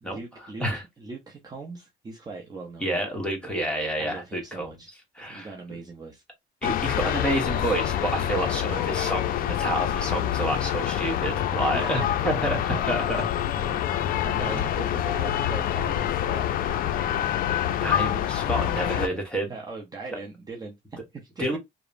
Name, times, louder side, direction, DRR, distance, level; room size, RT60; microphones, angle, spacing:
voice 1, 0.0-3.0 4.0-4.9 5.3-6.2 11.7-12.2 12.7-13.2 13.6-13.8 14.2-16.4 18.8-19.2 19.5-21.6, right 3 dB, 25° right, 0.6 m, -40 dB
voice 2, 2.8-4.8 5.1-5.5 6.6-13.2 14.4-14.6 17.8-19.5 21.4-21.6, right 1 dB, 5° left, 1.0 m, -29 dB
sound 1, 6.6-19.1, left 11 dB, 60° left, 0.4 m, -26 dB
2.9 x 2.0 x 2.5 m
cardioid pair, 110°, 17 cm